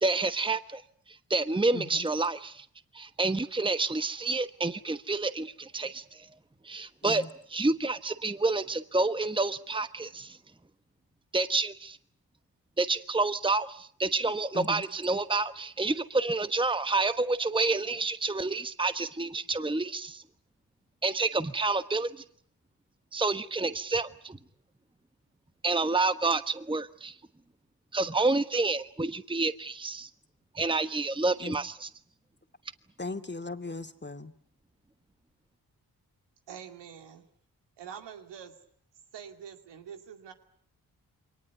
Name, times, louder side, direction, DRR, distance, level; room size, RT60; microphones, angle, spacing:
voice 1, 0.0-0.8 1.3-2.6 2.9-6.3 6.6-10.4 11.3-12.0 12.8-20.2 21.0-22.1 23.1-24.4 25.6-27.1 27.9-30.1 30.5-31.9, right 3 dB, 10° right, 12 dB, 1.2 m, -29 dB
voice 2, 1.7-2.1 7.0-7.3 14.5-14.8 31.4-31.6 33.0-34.3, left 3 dB, 25° left, 8 dB, 2.4 m, -38 dB
voice 3, 36.5-37.2 37.8-38.5 39.1-40.3, right 8 dB, 85° right, 6 dB, 2.6 m, -45 dB
23.0 x 19.5 x 9.4 m, 0.62 s
supercardioid pair, 40°, 41 cm